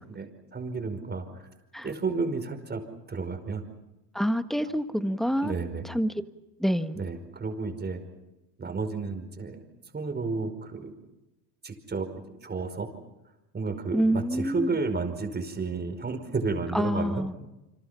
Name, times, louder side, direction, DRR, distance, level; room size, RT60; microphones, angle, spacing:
voice 1, 0.1-1.5 1.8-2.8 3.1-3.6 5.4-5.8 6.9-8.0 8.6-9.6 9.9-10.9 11.6-12.1 12.4-12.9 13.5-17.2, right 4 dB, 20° right, 7 dB, 5.2 m, -32 dB
voice 2, 4.1-5.5 5.8-6.1 6.6-7.0 13.9-14.7 16.7-17.3, equal, ahead, 9 dB, 1.5 m, -27 dB
29.0 x 25.5 x 5.8 m, 0.98 s
supercardioid pair, 105°, 48 cm